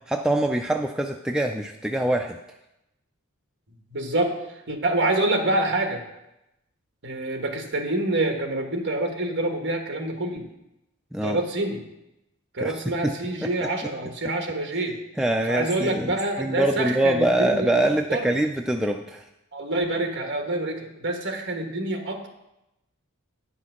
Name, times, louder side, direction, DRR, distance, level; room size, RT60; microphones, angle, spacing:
voice 1, 0.1-2.4 11.1-11.4 12.6-13.1 13.6-13.7 15.2-19.2, right 1 dB, 5° right, 3 dB, 0.3 m, -24 dB
voice 2, 3.9-6.0 7.0-10.4 11.2-11.8 12.5-15.0 15.5-18.3 19.5-22.3, right 2 dB, 50° right, 4 dB, 1.4 m, -27 dB
9.4 x 5.8 x 6.2 m, 0.91 s
head